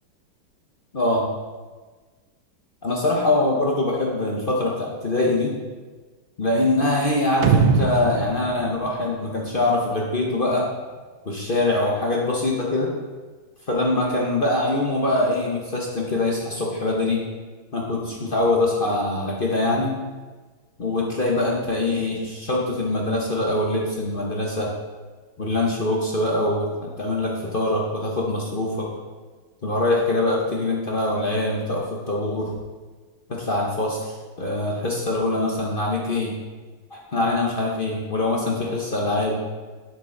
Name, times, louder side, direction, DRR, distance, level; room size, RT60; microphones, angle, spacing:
voice 1, 0.9-1.3 2.8-5.5 6.4-10.7 11.2-12.9 13.7-17.2 17.7-19.9 20.8-24.7 25.4-28.9 29.6-32.5 33.3-36.3 36.9-39.4, left 2 dB, 40° left, -2 dB, 0.8 m, -23 dB
sound 1, 7.4-9.9, right 5 dB, 80° right, 1.4 m, -22 dB
7.6 x 6.7 x 3.8 m, 1.4 s
omnidirectional pair, 2.2 m